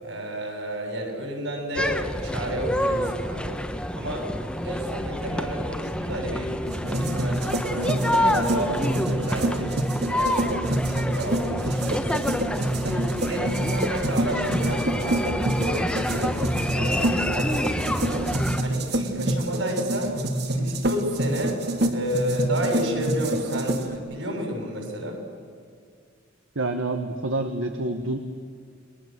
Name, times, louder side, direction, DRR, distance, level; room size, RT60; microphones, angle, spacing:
voice 1, 0.0-3.6 3.9-4.3 4.5-6.6 6.8-9.7 10.0-10.6 10.9-12.4 12.8-18.2 18.6-20.2 20.5-21.6 21.9-25.2, equal, 70° right, 2 dB, 7.2 m, -31 dB
sound 1, 1.7-18.6, left 1 dB, 5° left, 1.1 m, -28 dB
sound 2, 6.7-24.0, right 1 dB, 55° right, 2.2 m, -27 dB
voice 2, 26.5-28.2, right 2 dB, 90° right, 6 dB, 1.5 m, -27 dB
30.0 x 21.5 x 7.7 m, 2.2 s
head